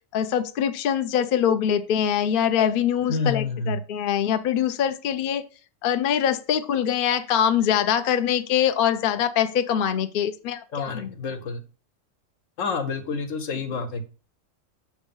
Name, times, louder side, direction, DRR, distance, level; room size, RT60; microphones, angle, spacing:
voice 1, 0.1-5.4 5.8-11.1, left 9 dB, 60° left, 10 dB, 0.6 m, -23 dB
voice 2, 3.1-3.7 10.7-11.6 12.6-14.0, left 4 dB, 80° left, 7 dB, 1.3 m, -28 dB
6.2 x 3.2 x 5.3 m, 0.35 s
omnidirectional pair, 1.3 m